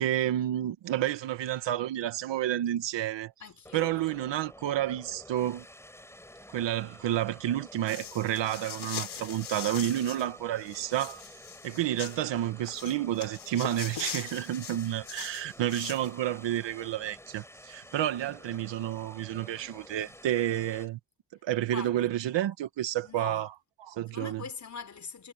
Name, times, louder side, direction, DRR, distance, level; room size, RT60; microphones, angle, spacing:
voice 1, 0.0-3.3 3.7-5.7 6.5-11.3 11.6-21.0 21.4-23.5 23.8-24.4, right 12 dB, 75° right, 1.8 m, -30 dB
voice 2, 3.4-4.2 21.7-22.1 23.0-23.4 24.1-25.3, left 5 dB, 40° left, 4.7 m, -42 dB
sound 1, 3.6-20.9, left 1 dB, 5° left, 7.6 m, -51 dB
sound 2, 7.9-10.3 10.6-12.2 12.7-16.1, left 9 dB, 60° left, 4.4 m, -41 dB
cardioid pair, 100°, 44 cm